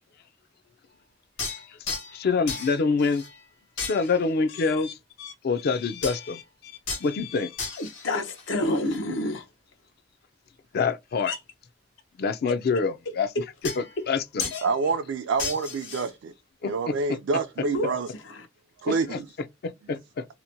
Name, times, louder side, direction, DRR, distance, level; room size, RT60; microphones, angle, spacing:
sound 1, 1.4-2.2 2.5-3.4 3.8-4.3 6.0-6.3 6.9-7.1 7.6-9.0 13.6-14.1 14.4-14.7 15.4-16.1, left 4 dB, 70° left, 1.3 m, -35 dB
voice 1, 2.1-3.2 3.8-5.0 5.4-6.4 7.0-7.5 10.7-11.3 12.2-13.3 13.8-14.5 16.6-17.2 18.8-19.2 19.6-20.2, left 4 dB, 55° left, 0.4 m, -26 dB
voice 2, 5.6-6.7 7.0-7.5 7.8-9.5 11.3-11.4 14.5-14.6 17.7-18.5, left 2 dB, 85° left, 0.7 m, -31 dB
voice 3, 14.6-16.3 16.6-18.1 18.8-19.3, right 4 dB, 75° right, 0.4 m, -27 dB
2.9 x 2.1 x 2.5 m
head